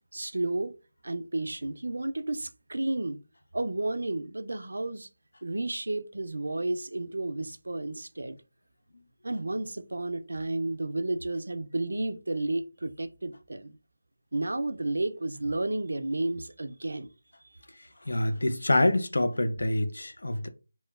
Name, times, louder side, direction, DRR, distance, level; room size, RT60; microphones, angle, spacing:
voice 1, 0.1-0.7 1.0-3.2 3.5-5.1 5.4-8.4 9.2-13.8 14.3-17.1 17.4-17.6, right 2 dB, 80° right, 0.4 m, -32 dB
voice 2, 18.1-20.5, left 1 dB, 85° left, 0.4 m, -26 dB
2.9 x 2.1 x 2.3 m
figure-of-eight pair, 175°, 0 cm